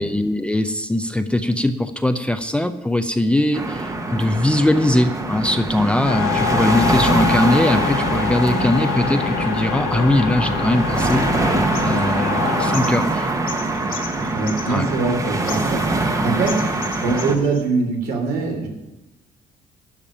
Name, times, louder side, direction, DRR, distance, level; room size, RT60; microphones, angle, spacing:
voice 1, 0.0-11.2 11.8-13.4 14.7-14.8, left 1 dB, 5° left, 8 dB, 0.6 m, -20 dB
sound 1, 3.5-17.4, right 2 dB, 20° right, 1.2 m, -23 dB
sound 2, 6.1-12.8, left 9 dB, 75° left, 1.5 m, -25 dB
sound 3, 9.4-10.7 11.1-11.5 11.7-15.1 15.4-16.1 16.4-17.6, left 7 dB, 60° left, 1.9 m, -37 dB
voice 2, 14.3-18.7, right 4 dB, 70° right, 1 dB, 3.3 m, -23 dB
12.0 x 5.2 x 8.7 m, 1.0 s
cardioid pair, 110°, 17 cm